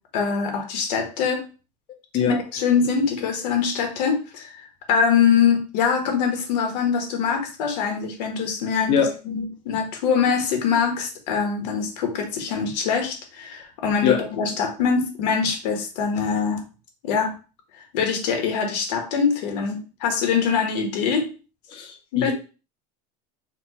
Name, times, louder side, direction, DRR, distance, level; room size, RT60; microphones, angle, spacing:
voice 1, 0.1-1.5 2.3-16.6 17.0-17.4 17.9-21.3 22.1-22.3, left 6 dB, 90° left, 4 dB, 1.3 m, -23 dB
voice 2, 21.7-22.3, left 8 dB, 25° left, 4 dB, 0.5 m, -21 dB
4.4 x 2.3 x 4.1 m, 0.34 s
cardioid pair, 175°, 20 cm